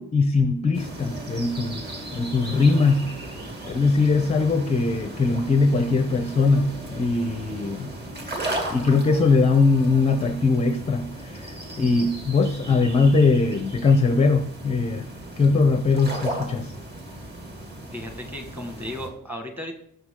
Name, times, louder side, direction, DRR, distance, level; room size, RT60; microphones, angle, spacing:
voice 1, 0.0-3.1 3.6-7.9 8.7-15.1 15.4-16.7, left 4 dB, 15° left, 9 dB, 0.6 m, -21 dB
sound 1, 0.7-19.1, right 1 dB, 25° right, 2.3 m, -36 dB
voice 2, 17.9-19.7, left 1 dB, 5° right, 4 dB, 1.5 m, -35 dB
18.0 x 7.0 x 3.7 m, 0.68 s
cardioid pair, 165°, 38 cm